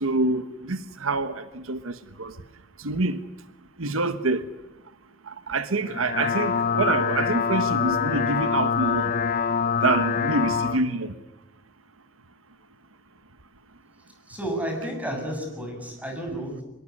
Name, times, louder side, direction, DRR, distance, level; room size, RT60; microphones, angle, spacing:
voice 1, 0.0-2.3 2.8-3.2 3.8-4.4 5.3-9.1 9.8-11.1, right 3 dB, 75° right, 12 dB, 1.2 m, -26 dB
sound 1, 5.8-10.8, left 6 dB, 45° left, 1.0 m, -25 dB
voice 2, 14.3-16.6, right 1 dB, 5° right, 3 dB, 7.6 m, -31 dB
24.5 x 22.0 x 9.7 m, 0.99 s
head